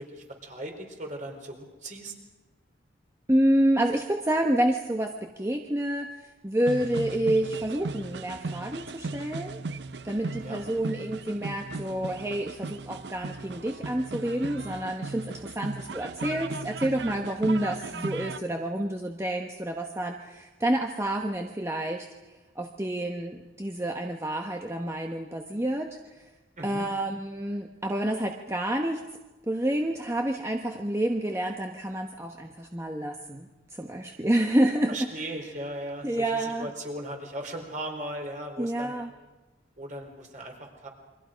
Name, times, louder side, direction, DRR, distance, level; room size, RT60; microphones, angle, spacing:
voice 1, 0.0-2.1 10.3-10.9 26.6-26.8 34.9-38.9 39.8-40.9, right 1 dB, 45° right, 2 dB, 4.3 m, -38 dB
voice 2, 3.3-9.6 10.0-22.1 22.6-26.2 26.6-29.0 29.5-35.1 36.0-36.7 38.6-39.1, right 1 dB, 15° right, 2 dB, 1.1 m, -28 dB
sound 1, 6.7-18.4, right 3 dB, 65° right, 0.7 m, -37 dB
29.0 x 24.0 x 5.2 m, 1.1 s
head